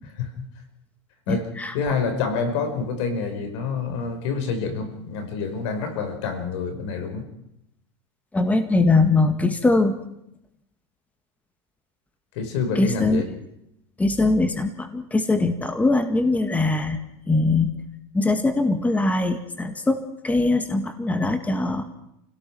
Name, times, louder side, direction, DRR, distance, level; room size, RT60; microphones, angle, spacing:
voice 1, 0.0-0.4 1.3-1.5 1.7-7.3 12.3-13.3, left 5 dB, 75° left, 8 dB, 5.0 m, -27 dB
voice 2, 1.3-1.7 8.3-10.0 12.8-13.2 14.0-17.0 17.3-17.7 18.1-20.0 20.2-21.9, left 2 dB, 10° left, 8 dB, 1.9 m, -21 dB
29.5 x 17.0 x 6.1 m, 0.80 s
supercardioid pair, 125°, 15 cm